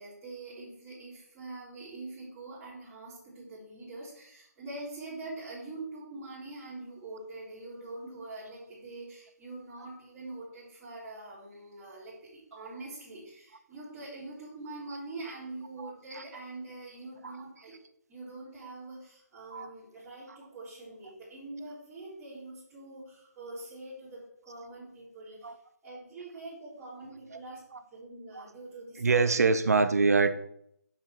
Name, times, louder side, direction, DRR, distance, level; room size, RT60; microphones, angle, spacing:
voice 1, 0.0-17.8 18.1-25.6 25.8-27.6 27.9-29.3, right 2 dB, 15° right, -14 dB, 3.8 m, -44 dB
voice 2, 15.8-16.2 17.2-17.4 19.5-19.7 20.3-20.4 25.4-25.6 27.3-27.4 27.7-27.8 28.4-28.5 29.0-30.3, right 4 dB, 65° right, 10 dB, 0.9 m, -26 dB
7.5 x 6.0 x 4.8 m, 0.73 s
figure-of-eight pair, 155°, 9 cm